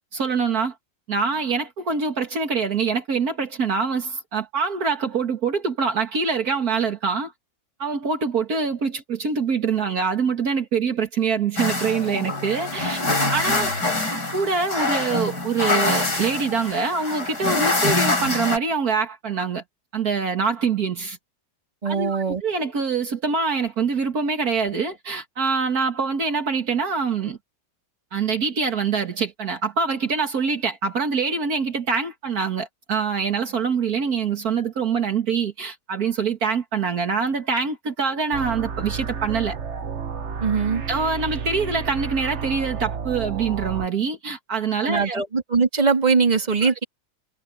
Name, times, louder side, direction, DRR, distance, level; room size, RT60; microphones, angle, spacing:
voice 1, 0.1-0.7 1.1-7.3 7.8-13.0 13.3-13.7 14.3-19.6 19.9-21.2 21.8-27.4 28.1-39.6 40.9-45.2 46.6-46.7, right 5 dB, 65° right, 2.3 m, -24 dB
sound 1, 11.6-18.6, left 2 dB, 80° left, 5.5 m, -25 dB
voice 2, 21.8-22.4 40.4-40.8 44.8-46.8, right 5 dB, 25° right, 2.4 m, -21 dB
sound 2, 38.3-43.9, right 6 dB, 45° right, 1.4 m, -31 dB
omnidirectional pair, 1.8 m